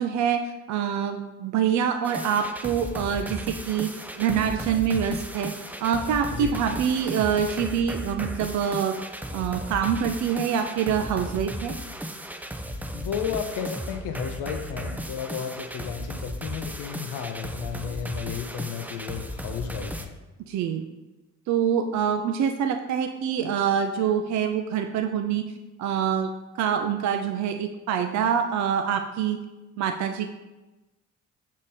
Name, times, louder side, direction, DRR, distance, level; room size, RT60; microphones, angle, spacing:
voice 1, 0.0-9.0 9.3-11.7 20.5-20.8 21.5-25.4 25.8-26.3 26.6-29.4 29.8-30.3, right 8 dB, 70° right, 6 dB, 0.5 m, -25 dB
sound 1, 2.0-20.1, equal, 5° right, 0.4 m, -35 dB
voice 2, 12.9-20.1, left 7 dB, 85° left, 5 dB, 0.6 m, -33 dB
6.2 x 3.7 x 4.2 m, 1.1 s
cardioid pair, 90°, 30 cm